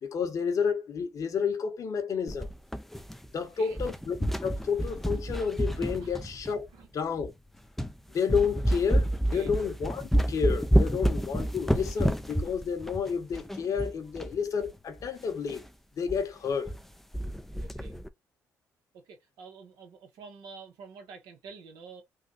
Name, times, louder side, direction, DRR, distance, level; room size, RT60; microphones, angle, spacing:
voice 1, 0.0-2.5 3.3-6.7 6.9-7.3 8.1-15.6 16.0-16.7, left 6 dB, 55° left, 1.1 m, -30 dB
sound 1, 2.3-3.4 3.7-6.7 7.3-7.4 7.8-8.0 8.3-14.4 14.6-14.7 15.0-15.1 15.5-15.7 16.1-16.2 16.5-16.8 17.1-18.1, equal, 5° left, 0.5 m, -29 dB
voice 2, 3.4-3.8 6.0-6.2 6.7-6.9 9.3-9.5 17.6-18.0 18.9-22.0, right 4 dB, 75° right, 1.4 m, -48 dB
3.7 x 2.5 x 2.6 m
hypercardioid pair, 55°, 7 cm